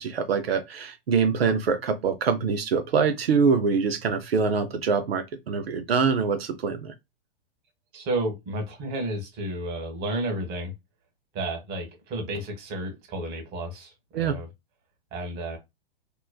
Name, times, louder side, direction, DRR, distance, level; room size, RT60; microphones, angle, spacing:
voice 1, 0.0-6.9 14.1-14.4, right 5 dB, 85° right, 0.6 m, -24 dB
voice 2, 7.9-10.7 11.3-14.5 15.1-15.6, right 1 dB, 35° right, 1.2 m, -32 dB
3.0 x 2.2 x 2.2 m
hypercardioid pair, 115°, 30 cm